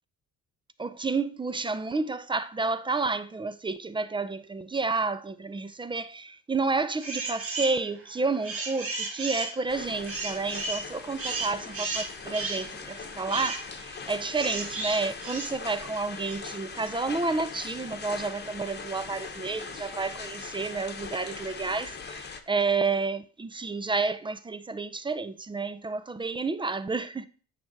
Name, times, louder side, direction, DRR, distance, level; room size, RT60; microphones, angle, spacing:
voice 1, 0.8-27.3, right 3 dB, 15° right, 0.4 m, -30 dB
sound 1, 7.0-7.8 8.2-16.4, right 3 dB, 40° right, 2.2 m, -34 dB
sound 2, 9.7-22.4, left 5 dB, 30° left, 1.0 m, -41 dB
9.3 x 3.4 x 6.4 m
cardioid pair, 120°, 35 cm